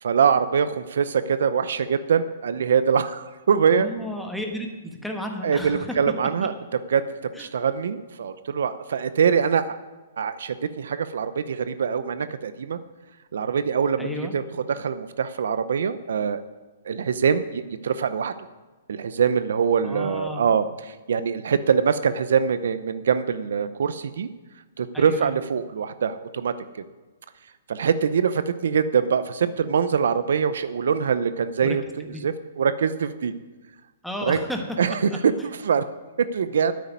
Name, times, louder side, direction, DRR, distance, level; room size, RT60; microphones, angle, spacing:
voice 1, 0.0-3.9 5.4-7.1 7.4-9.8 10.2-12.8 13.3-14.4 14.7-16.4 16.8-18.3 18.9-24.3 24.8-26.5 27.7-31.8 32.2-33.3 34.2-34.5 34.8-35.3 35.6-35.8 36.2-36.7, right 6 dB, 70° right, 13 dB, 0.6 m, -23 dB
voice 2, 3.7-6.0 6.4-6.5 7.4-7.5 14.0-14.3 19.8-20.4 24.9-25.4 31.6-31.8 32.0-32.2 34.0-35.2, left 1 dB, ahead, 2 dB, 1.3 m, -33 dB
9.3 x 8.4 x 9.4 m, 1.2 s
hypercardioid pair, 160°, 0 cm